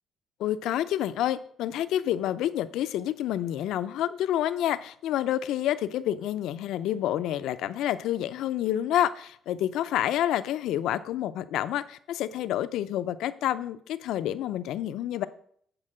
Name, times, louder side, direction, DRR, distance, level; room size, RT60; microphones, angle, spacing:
voice 1, 0.4-15.2, left 12 dB, 85° left, 0.5 m, -28 dB
8.7 x 4.5 x 7.5 m
cardioid pair, 120°, 0 cm